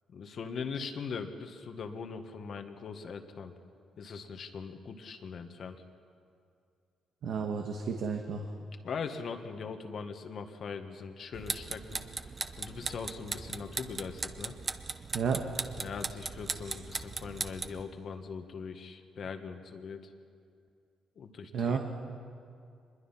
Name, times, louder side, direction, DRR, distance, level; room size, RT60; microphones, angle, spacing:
voice 1, 0.1-3.5 4.0-5.8 8.8-12.0 12.6-14.5 15.8-20.1 21.2-21.8, left 5 dB, 55° left, 7 dB, 1.8 m, -41 dB
voice 2, 7.2-8.4 15.1-15.5 16.6-16.8 21.5-21.8, right 6 dB, 70° right, 3 dB, 1.6 m, -32 dB
sound 1, 11.3-17.8, right 4 dB, 30° right, 1.0 m, -38 dB
24.5 x 21.5 x 5.8 m, 2.4 s
cardioid pair, 90°, 0 cm